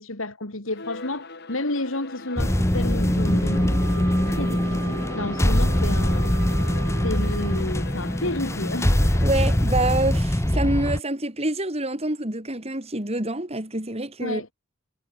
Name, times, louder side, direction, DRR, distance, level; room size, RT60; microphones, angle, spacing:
voice 1, 0.0-6.4 7.0-9.0 14.2-14.5, left 2 dB, 75° left, 3.3 m, -31 dB
Bowed string instrument, 0.7-10.2, left 3 dB, 55° left, 3.4 m, -40 dB
sound 1, 2.4-11.0, equal, 15° left, 1.4 m, -22 dB
Wind instrument woodwind instrument, 3.2-7.7, right 3 dB, 75° right, 6.5 m, -38 dB
voice 2, 9.2-14.4, right 2 dB, 30° right, 3.8 m, -26 dB
head